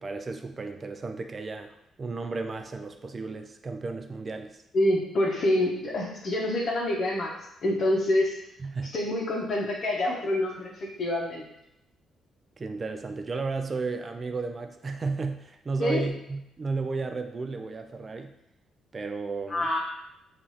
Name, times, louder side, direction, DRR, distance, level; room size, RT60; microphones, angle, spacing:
voice 1, 0.0-4.6 8.6-8.9 12.6-18.3 18.9-19.7, right 3 dB, 35° right, 6 dB, 0.3 m, -33 dB
voice 2, 4.7-7.3 7.6-8.3 8.9-11.5 15.8-16.0 19.5-19.8, left 1 dB, 50° left, -4 dB, 0.7 m, -26 dB
5.4 x 2.5 x 3.1 m, 0.83 s
cardioid pair, 90°, 0 cm